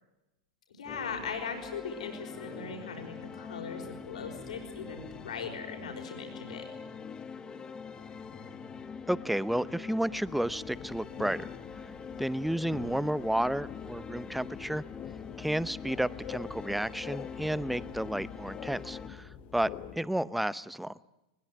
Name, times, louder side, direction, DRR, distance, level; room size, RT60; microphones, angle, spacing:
voice 1, 0.8-6.6, left 5 dB, 80° left, 3 dB, 5.4 m, -39 dB
sound 1, 0.9-19.1, left 6 dB, 20° left, 1.7 m, -44 dB
voice 2, 9.1-11.5 12.2-14.8 15.4-19.7 20.0-21.0, right 1 dB, 5° right, 18 dB, 0.8 m, -31 dB
sound 2, 10.3-20.0, left 9 dB, 40° left, 1.6 m, -46 dB
21.0 x 21.0 x 9.4 m, 0.95 s
hypercardioid pair, 105°, 4 cm